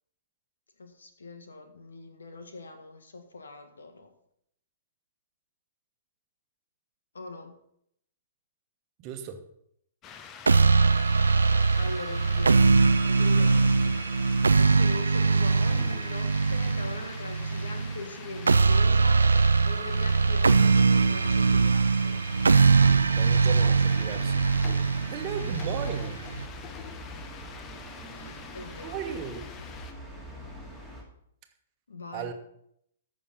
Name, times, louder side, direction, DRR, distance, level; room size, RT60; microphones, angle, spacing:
voice 1, 0.8-4.1 7.1-7.6 11.8-22.2 27.2-27.3 28.1-29.3 31.9-32.3, left 3 dB, 75° left, 6 dB, 1.7 m, -42 dB
voice 2, 9.0-9.5 23.2-24.3 25.1-26.3 28.8-29.6 32.1-32.3, right 7 dB, 35° right, 6 dB, 1.3 m, -36 dB
sound 1, 10.0-29.9, left 7 dB, 25° left, 0.9 m, -46 dB
sound 2, 10.5-26.5, right 4 dB, 75° right, 0.4 m, -22 dB
sound 3, 22.6-31.0, left 1 dB, 10° left, 2.7 m, -44 dB
14.0 x 6.2 x 5.3 m, 0.73 s
figure-of-eight pair, 115°, 0 cm